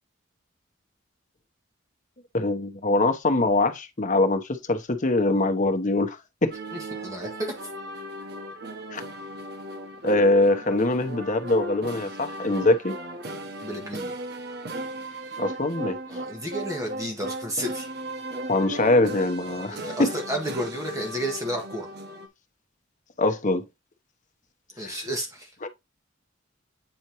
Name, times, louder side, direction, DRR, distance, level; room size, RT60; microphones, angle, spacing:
voice 1, 2.3-6.5 8.9-9.0 10.0-13.0 15.4-16.0 18.5-20.1 23.2-23.6 24.8-25.0 25.6-25.7, left 2 dB, 40° left, 1.0 m, -23 dB
sound 1, 6.5-22.3, right 1 dB, 60° right, 1.1 m, -37 dB
voice 2, 6.7-7.7 13.6-14.1 16.1-17.9 19.7-21.9 24.8-25.5, equal, 15° right, 1.6 m, -32 dB
8.8 x 4.4 x 3.0 m
head